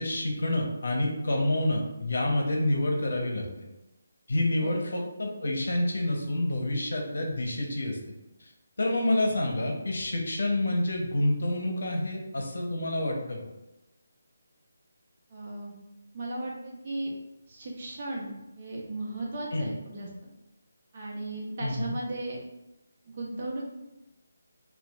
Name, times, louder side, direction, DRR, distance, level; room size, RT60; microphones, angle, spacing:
voice 1, 0.0-3.5 4.3-8.0 8.8-13.4 19.5-19.7 21.6-21.9, left 1 dB, 75° left, 1 dB, 0.8 m, -28 dB
voice 2, 15.3-15.7 16.1-17.1 17.5-20.3 20.9-22.4 23.0-23.7, right 2 dB, 40° right, -3 dB, 0.8 m, -36 dB
4.3 x 2.3 x 2.4 m, 0.94 s
figure-of-eight pair, 160°, 0 cm